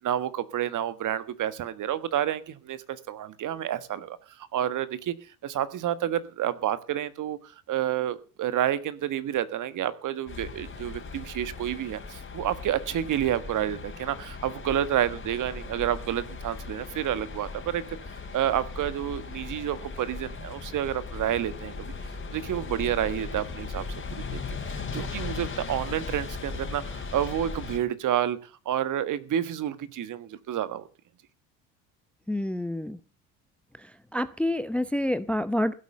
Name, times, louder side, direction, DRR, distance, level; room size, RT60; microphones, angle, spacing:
voice 1, 0.0-5.1 5.4-17.8 18.3-21.9 22.3-23.8 24.1-30.9, right 11 dB, 45° right, 14 dB, 1.4 m, -29 dB
sound 1, 10.3-27.8, left 4 dB, 30° left, 3.9 m, -38 dB
voice 2, 32.3-33.0 34.1-35.7, left 1 dB, 5° left, 16 dB, 0.6 m, -27 dB
16.0 x 8.3 x 6.7 m, 0.38 s
hypercardioid pair, 70°, 42 cm